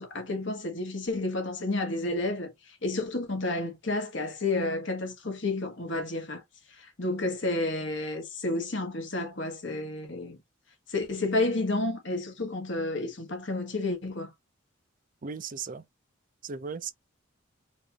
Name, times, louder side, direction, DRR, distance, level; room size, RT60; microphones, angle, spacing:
voice 1, 0.0-6.4 6.7-10.4 10.9-14.3, left 2 dB, 60° left, 1.3 m, -31 dB
voice 2, 15.2-15.8 16.4-16.9, right 5 dB, 40° right, 0.5 m, -36 dB
4.7 x 2.6 x 2.8 m
head